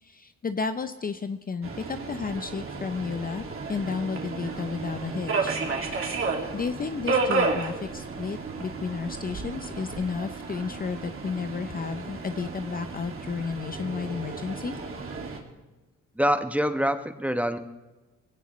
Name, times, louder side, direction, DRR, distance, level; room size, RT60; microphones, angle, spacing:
voice 1, 0.0-5.6 6.5-14.8, left 5 dB, 30° left, 9 dB, 0.6 m, -32 dB
Subway metro underground, 1.6-15.4, right 3 dB, 45° right, 2.5 m, -32 dB
voice 2, 16.2-17.6, equal, 5° right, 9 dB, 1.0 m, -25 dB
21.0 x 17.0 x 3.2 m, 1.1 s
cardioid pair, 90°, 30 cm